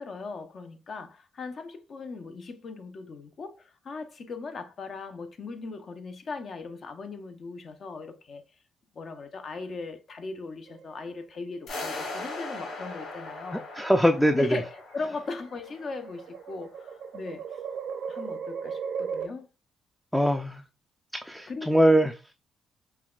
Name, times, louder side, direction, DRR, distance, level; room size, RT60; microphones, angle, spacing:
voice 1, 0.0-8.4 8.9-13.7 14.3-17.6 18.1-19.5 21.5-21.7, left 4 dB, 50° left, 0.6 m, -38 dB
sound 1, 10.7-11.5 12.7-13.1 14.0-19.3, right 6 dB, 75° right, 0.7 m, -37 dB
sound 2, 11.7-16.6, left 2 dB, 75° left, 2.2 m, -39 dB
voice 2, 13.8-14.5 20.1-20.6 21.2-22.3, equal, 5° left, 0.4 m, -22 dB
5.6 x 2.2 x 2.3 m
cardioid pair, 90°, 0 cm